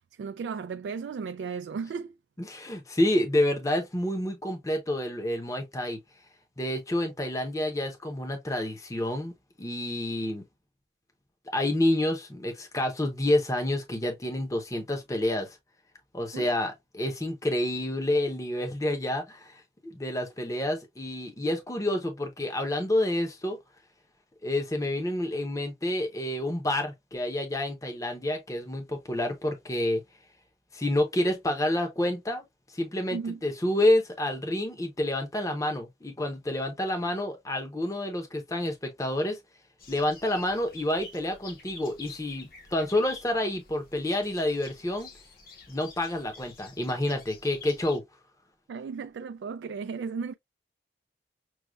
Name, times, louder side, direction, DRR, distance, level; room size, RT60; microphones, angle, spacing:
voice 1, 0.2-2.1 16.3-16.5 33.1-33.4 48.7-50.3, right 5 dB, 85° right, 0.3 m, -35 dB
voice 2, 2.4-6.0 6.6-9.3 9.6-10.4 11.5-15.6 16.1-23.6 24.4-30.0 30.7-32.4 32.7-39.4 39.9-45.1 45.7-48.0, left 1 dB, 20° left, 0.7 m, -28 dB
sound 1, 39.8-48.0, left 4 dB, 55° left, 1.0 m, -48 dB
6.2 x 2.3 x 2.3 m
head